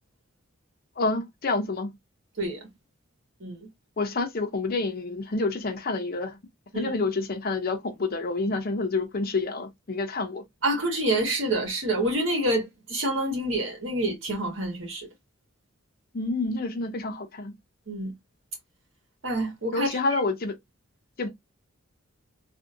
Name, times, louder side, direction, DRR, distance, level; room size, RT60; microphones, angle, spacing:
voice 1, 1.0-1.9 4.0-6.4 6.7-10.4 16.1-17.5 19.7-20.5 21.2-21.3, left 3 dB, 45° left, 0.6 m, -28 dB
voice 2, 10.6-15.1 17.9-18.1 19.2-20.0, right 1 dB, 65° right, 1.6 m, -27 dB
3.5 x 2.6 x 2.5 m
head